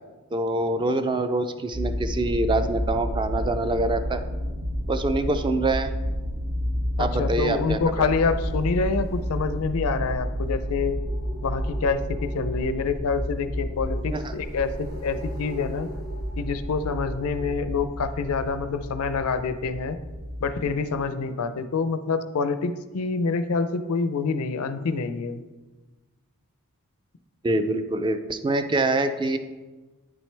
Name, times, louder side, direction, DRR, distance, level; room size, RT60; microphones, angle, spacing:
voice 1, 0.3-4.2 4.9-5.9 7.0-8.1 14.1-14.3 27.4-29.4, right 2 dB, 20° right, 9 dB, 0.3 m, -25 dB
sound 1, 1.7-21.0, equal, 50° right, 0.7 m, -31 dB
voice 2, 7.0-11.0 11.4-15.9 16.4-20.0 20.4-25.4, left 4 dB, 70° left, 11 dB, 0.5 m, -27 dB
sound 2, 7.7-17.5, left 1 dB, 75° right, 1.7 m, -45 dB
8.9 x 6.1 x 3.3 m, 1.3 s
head